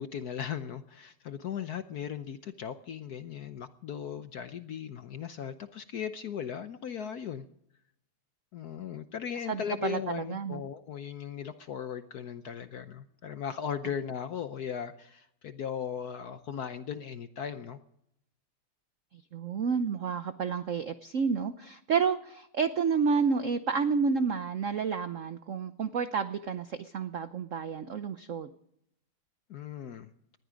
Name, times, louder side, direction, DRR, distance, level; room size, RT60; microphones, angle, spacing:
voice 1, 0.0-7.5 8.5-17.8 29.5-30.1, left 8 dB, 65° left, 10 dB, 1.0 m, -37 dB
voice 2, 9.5-10.6 19.3-28.5, right 5 dB, 80° right, 11 dB, 0.7 m, -30 dB
19.5 x 13.5 x 5.1 m, 0.74 s
omnidirectional pair, 2.4 m